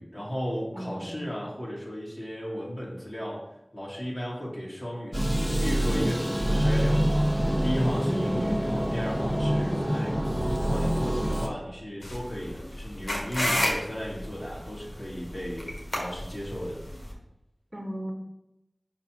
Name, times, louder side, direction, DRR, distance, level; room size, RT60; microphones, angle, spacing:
voice 1, 0.0-3.4 3.7-7.3 7.6-10.2 10.6-16.8, equal, 40° left, -5 dB, 2.9 m, -35 dB
voice 2, 0.7-1.3 8.1-8.5 17.7-18.1, equal, 25° right, 1 dB, 1.6 m, -34 dB
sound 1, 5.1-11.5, equal, 5° left, 1.4 m, -26 dB
sound 2, 12.0-17.1, left 1 dB, 90° left, 1.6 m, -32 dB
5.9 x 4.5 x 6.2 m, 0.87 s
wide cardioid pair, 50°, 0 cm